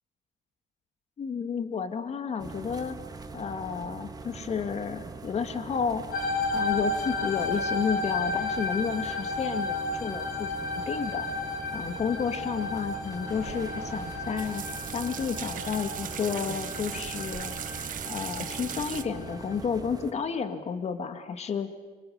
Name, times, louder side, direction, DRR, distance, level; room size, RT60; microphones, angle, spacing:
voice 1, 1.2-3.0 3.3-6.0 6.5-11.3 11.7-14.6 14.9-17.5 18.1-21.7, left 6 dB, 40° left, 8 dB, 2.1 m, -31 dB
sound 1, 2.4-20.1, right 4 dB, 20° right, 1.6 m, -42 dB
sound 2, 6.1-19.6, left 3 dB, 60° left, 3.9 m, -33 dB
sound 3, 13.3-19.0, right 9 dB, 55° right, 1.5 m, -38 dB
29.5 x 25.5 x 6.7 m, 1.3 s
cardioid pair, 110°, 17 cm